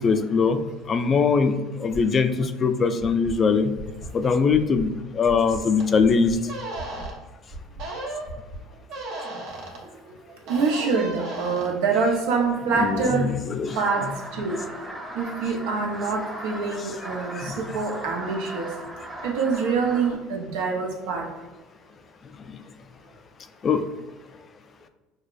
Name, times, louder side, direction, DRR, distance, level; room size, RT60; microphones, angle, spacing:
voice 1, 0.0-3.7 4.1-6.4 12.8-13.8 14.1-14.2 16.8-16.9 17.3-17.8 23.6-23.8, left 5 dB, 30° left, 9 dB, 0.3 m, -22 dB
sound 1, 3.0-3.3 3.7-4.1 4.5-4.8 5.2-5.6 6.0-6.3 6.7-7.1 7.5-7.8 8.2-8.6, right 2 dB, 35° right, 1.2 m, -38 dB
sound 2, 5.8-5.9 6.5-7.1 7.8-8.3 8.9-9.8 10.5-11.7, right 2 dB, 65° right, 1.1 m, -34 dB
voice 2, 10.5-13.3 13.8-14.6 15.1-18.7 19.2-21.3, right 4 dB, 80° right, 1 dB, 0.8 m, -25 dB
sound 3, 13.7-20.1, right 1 dB, 15° right, 0.9 m, -38 dB
6.3 x 2.3 x 2.5 m, 1.2 s
cardioid pair, 120°, 0 cm